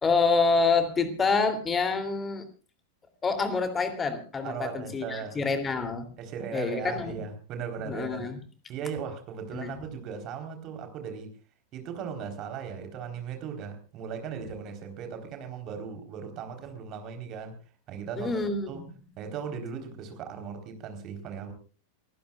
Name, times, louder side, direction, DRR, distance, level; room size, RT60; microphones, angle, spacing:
voice 1, 0.0-2.4 3.2-6.1 6.5-7.2 7.8-8.4 9.5-9.8 18.1-18.8, left 4 dB, 20° left, 9 dB, 2.8 m, -27 dB
voice 2, 4.4-5.5 6.2-8.3 8.7-11.3 11.7-17.5 17.9-18.3 18.7-18.8 19.2-21.5, right 7 dB, 35° right, 6 dB, 3.9 m, -37 dB
29.0 x 15.5 x 2.4 m, 0.36 s
figure-of-eight pair, 90°, 0 cm